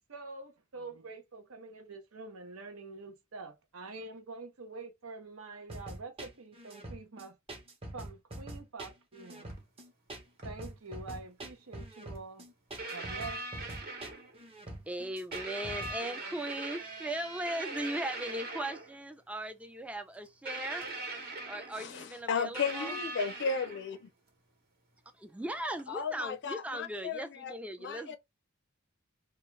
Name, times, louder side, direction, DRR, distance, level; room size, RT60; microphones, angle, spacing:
voice 1, 0.1-7.4 7.9-9.5 10.4-12.4 12.9-13.4, right 3 dB, 75° right, 0.8 m, -46 dB
sound 1, 5.7-16.0, right 1 dB, 25° right, 0.8 m, -44 dB
sound 2, 9.5-9.6 10.4-10.5 12.2-12.3 12.8-14.5 15.3-19.0 20.5-22.0 22.6-24.1 25.8-25.9, right 2 dB, 45° right, 1.0 m, -41 dB
voice 2, 14.9-20.9 21.5-23.0 25.1-28.2, right 1 dB, 5° right, 0.4 m, -38 dB
voice 3, 21.7-24.1 25.9-27.6 27.8-28.2, left 5 dB, 55° left, 0.5 m, -35 dB
2.4 x 2.3 x 3.1 m
head